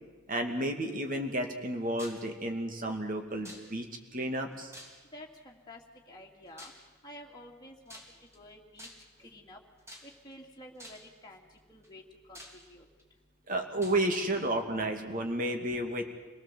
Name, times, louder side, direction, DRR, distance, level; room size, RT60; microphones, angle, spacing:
voice 1, 0.3-4.7 13.5-16.0, right 1 dB, 40° right, 4 dB, 2.5 m, -32 dB
sound 1, 2.0-2.3 3.5-4.0 4.7-5.3 6.6-6.9 7.9-8.4 8.8-9.2 9.9-10.3 10.8-11.2 11.8-11.9 12.4-13.0 13.8-14.0, equal, 15° right, 3.0 m, -49 dB
voice 2, 5.1-5.8 6.1-6.7 7.0-8.0 8.3-8.9 9.2-9.6 10.0-12.0 12.3-12.9, left 1 dB, 20° left, -2 dB, 2.4 m, -50 dB
27.0 x 18.5 x 7.6 m, 1.3 s
head